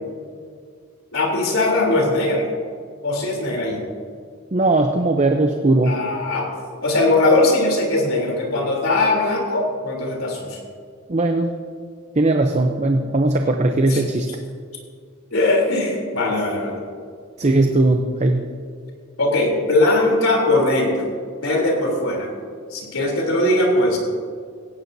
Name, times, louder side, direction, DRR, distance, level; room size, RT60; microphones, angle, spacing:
voice 1, 1.1-2.5 3.0-3.8 5.8-6.5 6.8-10.6 12.9-13.0 13.8-14.0 15.3-16.8 19.2-21.1 21.4-22.3 22.7-24.0, left 2 dB, 80° left, 0 dB, 3.6 m, -20 dB
voice 2, 4.5-6.0 11.1-11.5 12.2-14.3 17.4-18.5, right 2 dB, 35° right, 4 dB, 0.7 m, -18 dB
17.0 x 16.5 x 2.8 m, 2.1 s
head